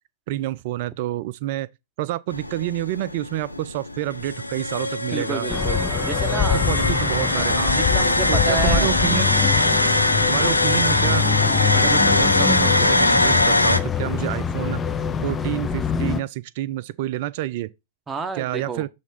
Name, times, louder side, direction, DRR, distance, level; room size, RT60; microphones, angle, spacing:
voice 1, 0.3-1.7 2.0-5.5 6.7-7.8 8.3-9.3 10.3-11.2 11.7-14.8 15.2-17.7 18.4-18.9, right 15 dB, 45° right, 0.4 m, -28 dB
sound 1, 2.3-13.8, left 2 dB, 85° left, 0.6 m, -21 dB
voice 2, 5.1-5.8 6.1-6.6 7.7-9.0 18.1-18.9, right 4 dB, 15° right, 1.0 m, -30 dB
sound 2, 5.5-16.2, left 7 dB, 15° left, 0.5 m, -24 dB
7.2 x 3.4 x 4.1 m
figure-of-eight pair, 100°, 0 cm